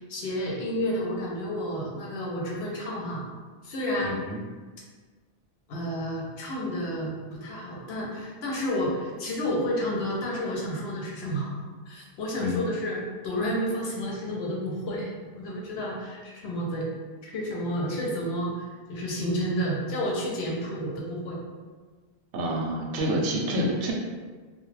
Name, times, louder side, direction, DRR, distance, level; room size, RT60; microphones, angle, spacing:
voice 1, 0.0-3.2 3.6-4.2 5.7-16.9 17.2-21.4, equal, 80° left, -3 dB, 0.9 m, -31 dB
voice 2, 4.0-4.4 12.4-12.6 22.3-23.9, equal, 70° right, -2 dB, 0.7 m, -28 dB
2.2 x 2.1 x 3.1 m, 1.4 s
omnidirectional pair, 1.0 m